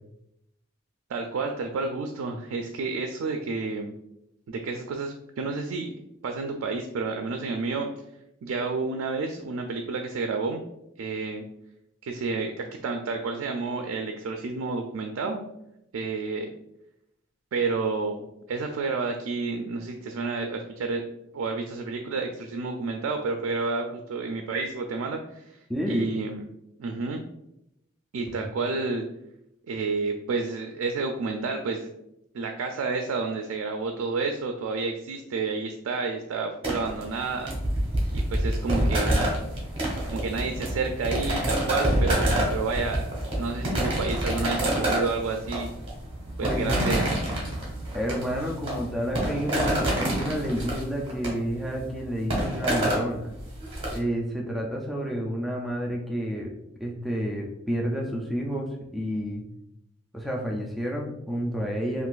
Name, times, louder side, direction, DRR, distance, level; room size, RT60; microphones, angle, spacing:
voice 1, 1.1-3.9 4.5-7.9 8.4-10.6 11.0-11.4 12.0-15.4 15.9-16.5 17.5-21.0 21.3-25.6 25.9-26.5 26.8-27.2 28.1-29.1 29.7-31.9 32.3-37.5 38.1-39.1 40.1-43.0 43.3-45.7 46.4-47.0, right 4 dB, 80° right, 4 dB, 0.3 m, -30 dB
voice 2, 25.7-26.1 28.4-28.5 46.4-46.9 47.9-53.3 53.9-56.5 56.8-59.4 60.1-62.1, equal, ahead, -1 dB, 0.3 m, -30 dB
sound 1, 36.6-54.0, right 1 dB, 25° right, 0.9 m, -27 dB
3.8 x 2.5 x 2.4 m, 0.82 s
head